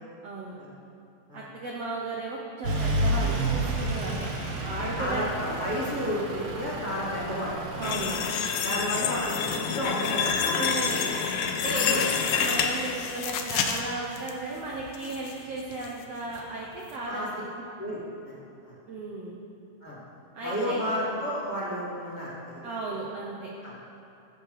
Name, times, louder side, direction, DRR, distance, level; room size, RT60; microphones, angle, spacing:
voice 1, 0.2-0.5 1.3-4.3 4.6-5.3 7.8-8.2 10.6-17.2 18.9-19.4 20.3-20.8 22.6-23.5, right 2 dB, 85° right, -3 dB, 1.3 m, -35 dB
Truck / Idling, 2.6-8.0, right 1 dB, 60° right, 1.4 m, -30 dB
voice 2, 4.8-7.9 8.6-10.2 11.7-12.0 17.0-17.3 17.8-18.3 18.6-18.7 19.8-20.0 20.4-22.6 23.6-23.7, equal, 20° left, -8 dB, 1.4 m, -32 dB
sound 1, 7.8-14.3 14.7-15.3 15.7-15.9 16.4-16.5, left 6 dB, 75° left, 2.3 m, -28 dB
16.0 x 7.8 x 4.9 m, 2.8 s
omnidirectional pair, 4.5 m